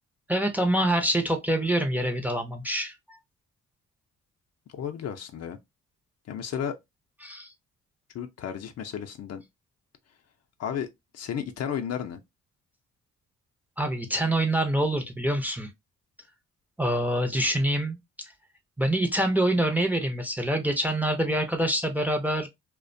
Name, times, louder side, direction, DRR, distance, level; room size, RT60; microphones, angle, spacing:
voice 1, 0.3-3.2 7.2-7.5 13.8-15.7 16.8-18.0 18.8-22.5, right 1 dB, 5° right, 0.5 m, -25 dB
voice 2, 4.7-5.6 6.3-6.8 8.1-9.4 10.6-10.9 11.1-12.2, left 8 dB, 55° left, 0.5 m, -33 dB
2.4 x 2.2 x 2.5 m
cardioid pair, 90°, 30 cm